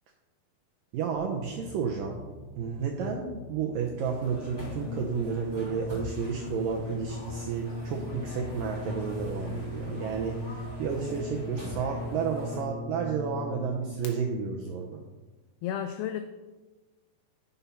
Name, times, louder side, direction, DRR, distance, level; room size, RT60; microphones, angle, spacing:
voice 1, 0.9-2.2 2.6-15.0, right 6 dB, 80° right, 1 dB, 2.0 m, -32 dB
sound 1, 1.2-12.4, left 1 dB, 25° right, 3.0 m, -47 dB
sound 2, 4.0-12.6, left 1 dB, 5° right, 3.0 m, -43 dB
Brass instrument, 4.8-14.1, left 1 dB, 60° left, 2.5 m, -39 dB
voice 2, 15.6-16.2, left 10 dB, 85° left, 8 dB, 2.1 m, -32 dB
10.0 x 7.1 x 5.6 m, 1.2 s
omnidirectional pair, 5.0 m